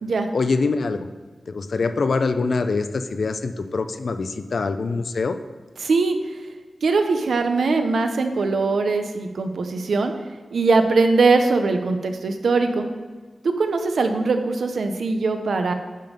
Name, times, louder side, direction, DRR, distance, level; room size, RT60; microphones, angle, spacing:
voice 1, 0.3-1.0 1.5-5.4, left 4 dB, 60° left, 9 dB, 0.5 m, -24 dB
voice 2, 5.8-6.2 6.8-10.1 10.5-12.9 13.4-15.7, right 3 dB, 80° right, 6 dB, 0.9 m, -21 dB
11.0 x 5.3 x 5.3 m, 1.4 s
wide cardioid pair, 145°, 0 cm